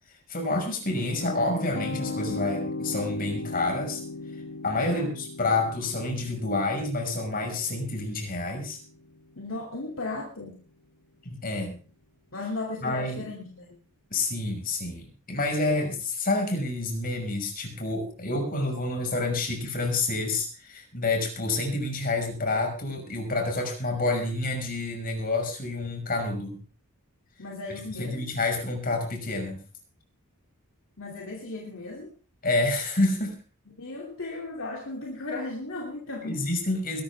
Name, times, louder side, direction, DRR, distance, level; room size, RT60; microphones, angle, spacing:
voice 1, 0.3-4.0 4.6-8.8 11.2-11.8 12.8-13.2 14.1-26.6 28.0-29.6 32.4-33.4 36.2-37.0, left 2 dB, 40° left, 3 dB, 5.6 m, -28 dB
sound 1, 0.8-9.7, left 3 dB, 75° left, 2.7 m, -38 dB
voice 2, 4.8-5.2 9.4-10.6 12.3-13.8 27.4-28.3 31.0-32.1 33.8-36.5, left 2 dB, 60° left, -1 dB, 2.9 m, -36 dB
21.5 x 12.5 x 3.5 m, 0.38 s
head